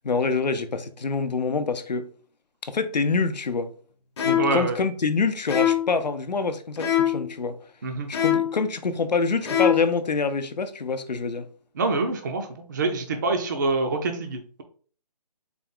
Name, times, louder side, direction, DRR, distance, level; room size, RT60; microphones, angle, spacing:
voice 1, 0.0-2.1 2.7-3.7 4.2-7.6 8.1-11.5, left 4 dB, 90° left, 0.6 m, -26 dB
sound 1, 4.2-4.6 5.5-6.0 6.8-7.3 8.1-8.6 9.4-10.0, left 10 dB, 40° left, 0.8 m, -23 dB
voice 2, 4.4-4.8 7.8-8.1 11.8-14.6, right 3 dB, 30° right, 0.4 m, -26 dB
4.0 x 2.4 x 3.6 m
figure-of-eight pair, 155°, 21 cm